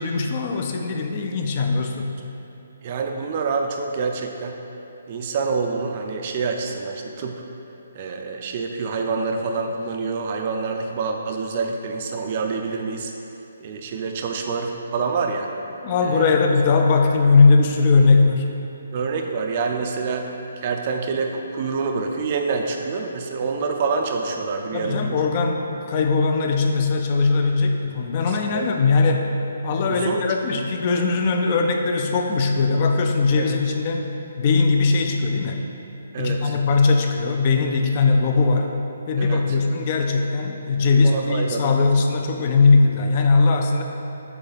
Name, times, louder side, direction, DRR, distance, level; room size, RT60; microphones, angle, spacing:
voice 1, 0.0-2.2 15.8-18.5 24.7-29.3 29.6-35.6 36.2-38.7 39.1-43.8, left 4 dB, 30° left, 3 dB, 0.4 m, -19 dB
voice 2, 2.8-4.6 5.1-7.4 7.9-13.1 13.6-15.5 16.0-16.4 18.9-20.3 20.6-25.2 28.3-28.7 29.9-30.2 33.4-33.6 36.1-36.6 39.2-39.4 41.0-41.8, right 4 dB, 30° right, 3 dB, 0.5 m, -27 dB
7.9 x 3.3 x 4.0 m, 2.9 s
hypercardioid pair, 170°, 0 cm